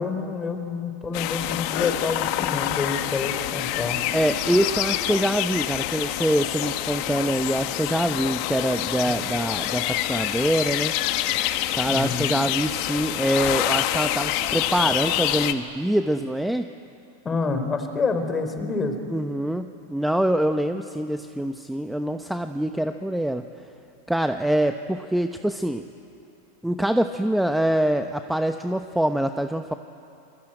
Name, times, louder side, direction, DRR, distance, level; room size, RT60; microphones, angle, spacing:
voice 1, 0.0-4.0 9.1-9.2 11.9-12.3 17.2-19.0, left 4 dB, 20° left, 7 dB, 3.9 m, -28 dB
sound 1, 1.1-15.5, left 14 dB, 55° left, 1.4 m, -27 dB
voice 2, 4.1-10.9 11.7-16.7 19.1-23.7 24.1-25.8 26.6-29.7, right 1 dB, 5° right, 7 dB, 0.9 m, -24 dB
28.0 x 22.5 x 9.0 m, 2.6 s
hypercardioid pair, 110°, 0 cm